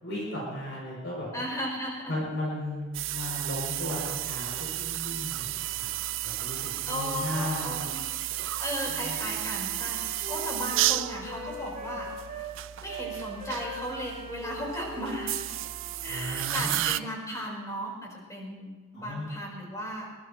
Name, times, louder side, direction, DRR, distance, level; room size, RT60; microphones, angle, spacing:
voice 1, 0.0-1.3 2.1-5.9 6.4-7.8 8.9-9.2 16.1-16.9 18.9-19.4, left 1 dB, 60° left, -5 dB, 6.5 m, -35 dB
voice 2, 1.3-2.2 6.9-8.0 8.6-12.1 12.8-15.4 16.0-20.1, equal, 15° left, -2 dB, 4.3 m, -36 dB
sound 1, 2.9-17.0, right 15 dB, 70° right, 0.4 m, -33 dB
Wind instrument woodwind instrument, 8.7-12.6 12.9-17.1, right 1 dB, 40° right, 2.2 m, -42 dB
23.0 x 19.0 x 3.1 m, 1.4 s
head